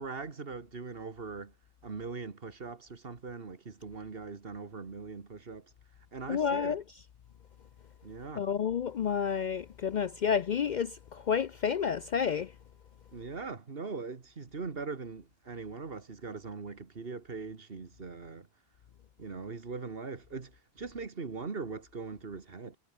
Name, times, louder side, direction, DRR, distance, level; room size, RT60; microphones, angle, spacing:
voice 1, 0.0-1.5 1.8-5.7 6.1-6.8 8.0-8.5 13.1-18.5 19.2-22.8, right 4 dB, 60° right, 2.0 m, -41 dB
voice 2, 6.3-6.8 8.4-12.5, left 7 dB, 55° left, 0.5 m, -30 dB
omnidirectional pair, 1.1 m